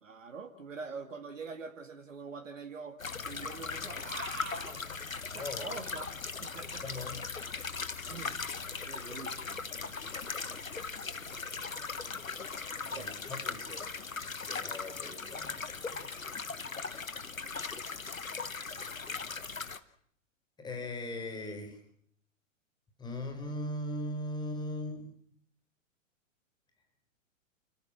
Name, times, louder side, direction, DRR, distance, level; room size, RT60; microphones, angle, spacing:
voice 1, 0.0-3.0 3.2-4.8 5.3-6.1 6.4-7.0 8.1-10.0 11.3-11.4 12.9-13.2, right 4 dB, 70° right, 5 dB, 2.2 m, -44 dB
sound 1, 3.0-19.8, left 5 dB, 80° left, 1.3 m, -39 dB
voice 2, 5.3-5.7 6.5-7.2 12.9-13.9 14.4-16.4 20.6-21.8 23.0-25.2, left 1 dB, 10° left, 5 dB, 4.3 m, -40 dB
29.5 x 14.5 x 7.5 m, 0.65 s
figure-of-eight pair, 110°, 40 cm